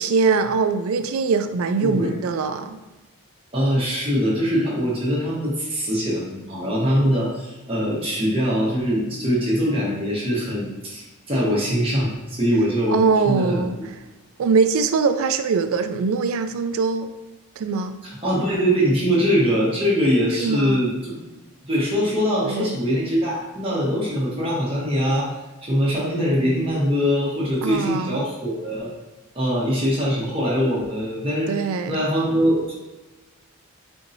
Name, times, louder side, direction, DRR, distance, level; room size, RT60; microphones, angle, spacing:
voice 1, 0.0-2.8 12.9-13.8 14.4-17.1 17.6-18.0 20.4-20.9 22.4-22.8 27.6-28.2 31.5-32.1, right 5 dB, 75° right, 9 dB, 0.3 m, -22 dB
voice 2, 3.5-11.0 11.3-13.7 18.0-21.2 21.7-25.3 25.6-28.9 29.3-31.5 31.9-32.7, equal, 25° right, -7 dB, 1.1 m, -22 dB
4.4 x 2.7 x 2.6 m, 1.1 s
head